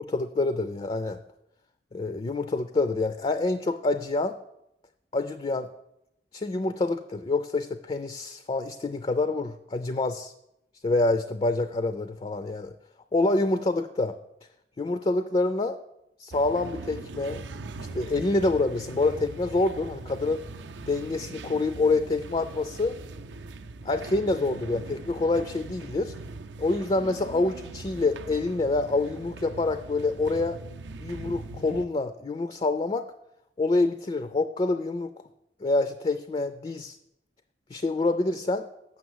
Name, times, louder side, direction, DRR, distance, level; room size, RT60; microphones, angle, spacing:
voice 1, 0.1-1.2 1.9-4.3 5.1-5.7 6.3-10.3 10.8-12.7 13.1-14.1 14.8-15.8 16.2-17.4 17.8-20.4 20.9-22.9 23.8-26.1 26.6-30.6 31.0-33.0 33.6-35.1 35.6-37.0 37.7-38.7, left 2 dB, 30° left, 10 dB, 0.4 m, -26 dB
sound 1, 16.3-31.9, right 3 dB, 80° right, 0.5 m, -41 dB
7.2 x 6.2 x 7.8 m, 0.83 s
head